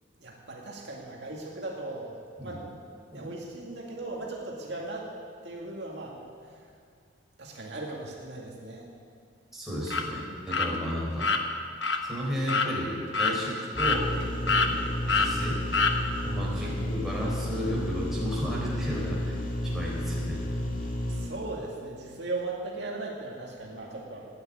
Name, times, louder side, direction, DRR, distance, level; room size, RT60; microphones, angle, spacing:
voice 1, 0.2-2.7 3.1-5.1 5.4-6.2 6.4-6.7 7.4-8.9 16.5-16.8 21.1-24.3, right 2 dB, 60° right, -2 dB, 2.2 m, -38 dB
voice 2, 9.5-11.3 12.0-14.1 14.4-15.6 16.2-19.4 19.6-20.4, equal, ahead, -5 dB, 4.2 m, -33 dB
sound 1, 9.9-10.0 10.5-10.7 11.2-11.4 11.8-12.0 12.5-12.7 13.1-13.3 13.8-14.2 14.5-14.7 15.1-15.3 15.7-15.9, left 4 dB, 65° left, 1.2 m, -25 dB
sound 2, 13.7-21.3, left 1 dB, 45° left, 2.2 m, -32 dB
15.0 x 9.7 x 9.3 m, 2.2 s
head